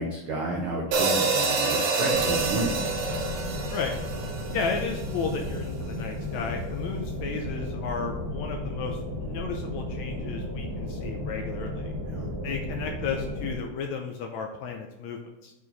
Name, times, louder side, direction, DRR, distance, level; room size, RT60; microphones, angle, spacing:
voice 1, 0.0-2.8 12.1-12.3, right 2 dB, 85° right, 0 dB, 1.1 m, -31 dB
sound 1, 0.9-5.3, right 3 dB, 60° right, 1.6 m, -27 dB
sound 2, 2.1-13.5, left 1 dB, 15° right, 1.0 m, -34 dB
voice 2, 4.5-11.9 12.4-15.5, left 5 dB, 75° left, 3 dB, 1.8 m, -33 dB
7.4 x 4.8 x 4.1 m, 1.0 s
omnidirectional pair, 3.8 m